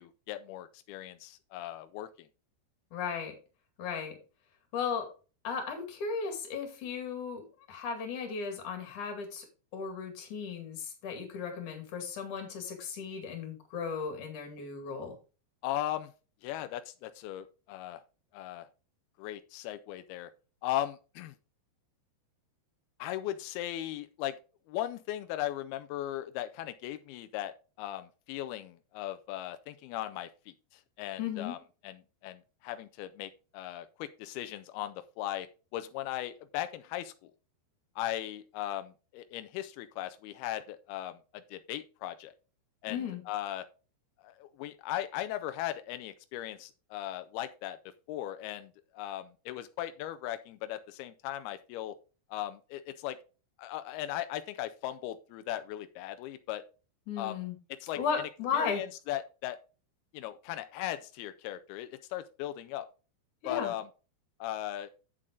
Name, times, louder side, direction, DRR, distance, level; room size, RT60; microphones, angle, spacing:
voice 1, 0.0-2.3 15.6-16.1 16.4-18.0 18.3-18.7 19.2-20.3 20.6-21.4 23.0-24.3 24.7-30.3 30.7-31.6 31.8-35.5 35.7-37.3 38.0-42.3 42.8-43.7 44.2-47.8 48.1-52.0 52.3-53.2 53.6-56.6 57.2-57.5 57.8-58.0 58.5-59.6 60.1-62.9 63.5-63.9 64.4-64.9, left 13 dB, 85° left, 10 dB, 2.2 m, -38 dB
voice 2, 2.9-3.4 3.8-4.2 4.7-5.1 5.4-9.4 9.7-15.1 31.2-31.6 42.9-43.2 57.1-57.5 58.0-58.8 63.4-63.7, left 6 dB, 50° left, 5 dB, 3.2 m, -35 dB
9.3 x 7.5 x 3.7 m, 0.33 s
omnidirectional pair, 5.2 m